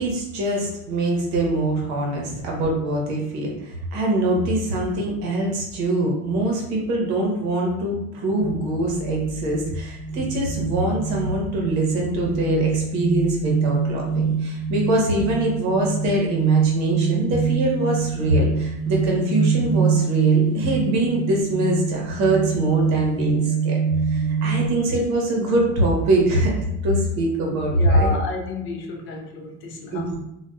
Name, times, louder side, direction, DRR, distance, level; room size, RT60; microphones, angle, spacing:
voice 1, 0.0-23.7 24.1-26.5 26.8-28.1 29.9-30.2, right 1 dB, 50° right, -1 dB, 0.9 m, -23 dB
sound 1, 8.4-24.7, right 5 dB, ahead, 0.7 m, -25 dB
voice 2, 27.7-30.2, left 2 dB, 35° left, 2 dB, 0.4 m, -31 dB
2.7 x 2.2 x 2.2 m, 0.86 s
supercardioid pair, 130°, 37 cm